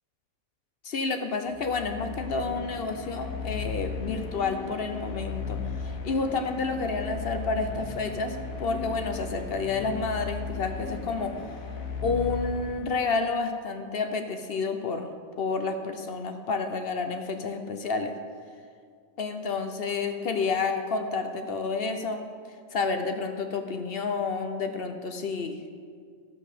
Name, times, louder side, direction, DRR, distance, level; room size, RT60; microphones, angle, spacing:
voice 1, 0.8-11.5 12.0-15.1 15.4-18.1 19.2-22.2 22.7-25.6, left 4 dB, 55° left, 7 dB, 0.8 m, -30 dB
sound 1, 1.5-13.2, left 5 dB, 80° left, 1.4 m, -36 dB
12.5 x 5.5 x 6.7 m, 2.1 s
omnidirectional pair, 1.4 m